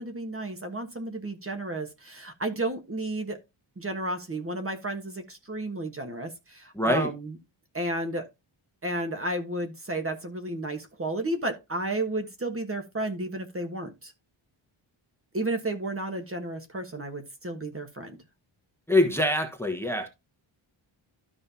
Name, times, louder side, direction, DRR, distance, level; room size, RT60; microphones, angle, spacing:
voice 1, 0.0-3.4 3.8-7.4 7.7-8.3 8.8-14.1 15.3-18.2, right 2 dB, 25° right, 1.3 m, -32 dB
voice 2, 6.8-7.1 18.9-20.1, left 1 dB, 5° left, 1.2 m, -24 dB
12.5 x 5.4 x 2.8 m
wide cardioid pair, 140°, 50 cm